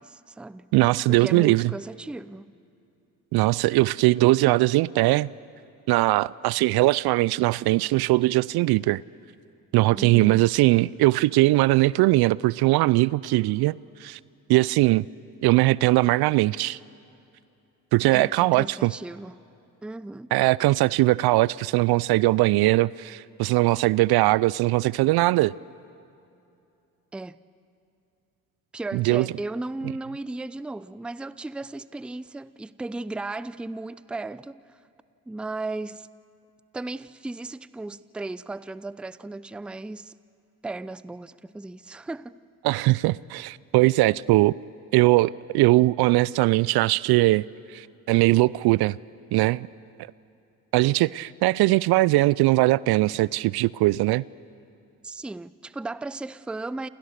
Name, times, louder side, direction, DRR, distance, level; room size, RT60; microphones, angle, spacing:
voice 1, 0.0-0.7 1.1-2.5 9.9-10.5 18.1-19.4 19.8-20.3 27.1-27.4 28.7-34.8 35.3-36.1 36.7-40.1 40.6-42.4 55.0-56.9, right 2 dB, ahead, 0.5 m, -35 dB
voice 2, 0.7-1.7 3.3-5.3 5.9-9.0 9.7-13.8 14.0-14.2 14.5-15.0 15.4-16.8 17.9-18.9 20.3-25.5 28.9-29.3 42.6-44.5 44.9-47.5 47.7-49.0 49.3-49.7 50.7-54.2, right 19 dB, 55° right, 0.5 m, -20 dB
28.5 x 28.0 x 6.7 m
hypercardioid pair, 55°, 47 cm